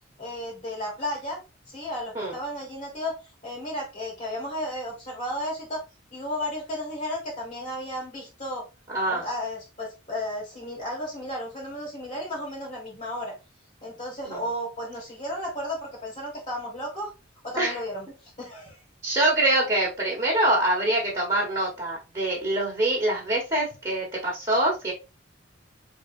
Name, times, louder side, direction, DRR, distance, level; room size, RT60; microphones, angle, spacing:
voice 1, 0.2-1.4 1.7-5.8 6.1-8.6 9.0-13.3 13.8-17.1 17.4-18.8, left 1 dB, 35° left, 0 dB, 1.6 m, -33 dB
voice 2, 8.9-9.2 14.2-14.4 17.6-17.8 19.0-24.9, right 1 dB, 20° right, -3 dB, 1.4 m, -24 dB
4.5 x 3.6 x 2.7 m, 0.28 s
head